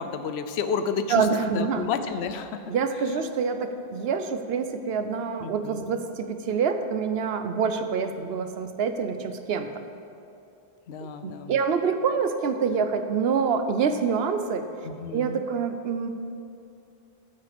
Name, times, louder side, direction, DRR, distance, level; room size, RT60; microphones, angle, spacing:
voice 1, 0.0-1.3 1.5-2.6 5.4-5.8 10.9-11.5 14.8-15.4, left 6 dB, 90° left, 9 dB, 0.9 m, -31 dB
voice 2, 1.1-1.9 2.7-9.7 11.2-14.7 15.1-16.1, right 6 dB, 75° right, 9 dB, 0.9 m, -26 dB
13.5 x 5.7 x 5.1 m, 2.6 s
omnidirectional pair, 1.0 m